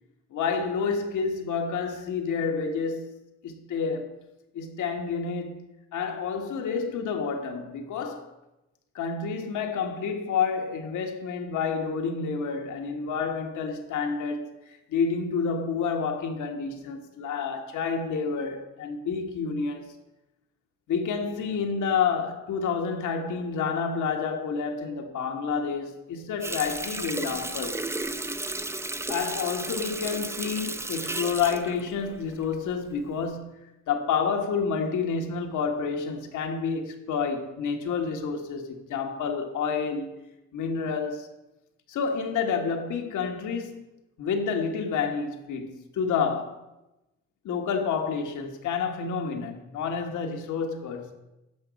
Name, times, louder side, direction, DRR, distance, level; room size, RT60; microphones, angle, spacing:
voice 1, 0.3-3.2 3.4-4.2 4.5-5.6 5.9-8.3 8.9-19.9 20.9-27.8 29.1-33.6 33.9-40.2 40.5-41.3 41.9-43.8 44.2-46.6 47.4-51.1, left 5 dB, 80° left, 1.4 m, -29 dB
Water tap faucet, 26.4-32.8 33.2-33.4, right 2 dB, 10° right, 0.5 m, -34 dB
11.0 x 6.8 x 5.2 m
cardioid pair, 90°, 30 cm